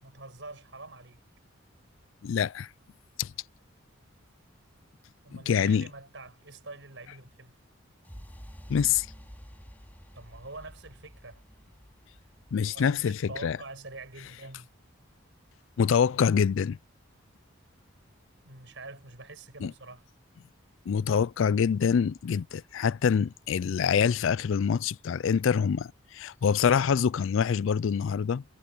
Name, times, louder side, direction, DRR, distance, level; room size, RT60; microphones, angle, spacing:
voice 1, 0.0-1.2 5.2-7.6 10.1-11.4 12.7-14.7 18.4-20.1, right 2 dB, 60° right, 6.3 m, -45 dB
voice 2, 2.2-2.7 3.2-3.3 5.3-5.9 8.7-9.1 12.5-13.6 15.8-16.8 19.6-19.7 20.9-28.4, left 7 dB, 70° left, 0.4 m, -25 dB
sound 1, 8.0-16.0, equal, 10° left, 2.7 m, -50 dB
head